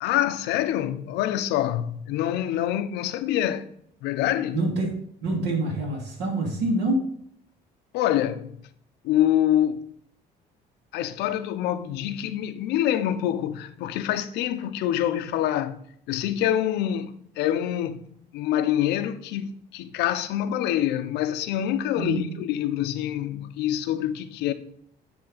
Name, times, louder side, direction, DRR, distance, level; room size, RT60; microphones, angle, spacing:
voice 1, 0.0-3.7 4.0-4.6 7.9-8.6 9.0-9.8 10.9-15.8 16.1-24.5, left 11 dB, 90° left, 0.5 m, -26 dB
voice 2, 4.5-7.1 22.0-22.3, right 2 dB, 80° right, 2.1 m, -26 dB
9.7 x 3.4 x 3.8 m
cardioid pair, 110°, 17 cm